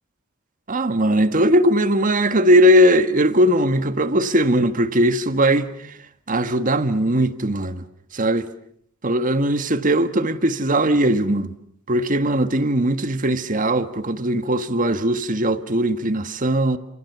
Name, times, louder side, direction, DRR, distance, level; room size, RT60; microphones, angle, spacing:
voice 1, 0.7-5.7 6.3-7.8 8.1-8.5 9.0-11.5 11.9-16.8, equal, 40° right, 1.5 m, -19 dB
29.5 x 28.0 x 6.8 m
head